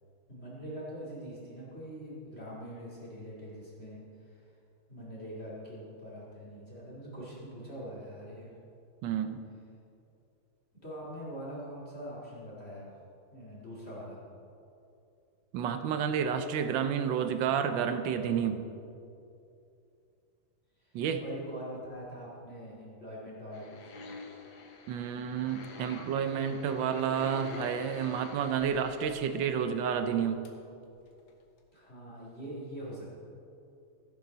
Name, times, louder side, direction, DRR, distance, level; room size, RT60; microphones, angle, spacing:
voice 1, 0.3-4.4 4.9-8.5 10.8-12.9 13.3-14.2 20.8-20.9 21.2-24.0 31.7-33.1, equal, 30° left, -6 dB, 2.7 m, -43 dB
voice 2, 9.0-9.4 15.5-18.6 20.9-21.2 24.9-30.4, right 7 dB, 70° right, 8 dB, 1.4 m, -30 dB
sound 1, 23.5-30.1 30.4-30.5 30.9-31.0 31.3-31.4 31.6-31.7, left 3 dB, 65° left, 1.8 m, -47 dB
15.0 x 10.0 x 4.0 m, 2.6 s
omnidirectional pair, 2.3 m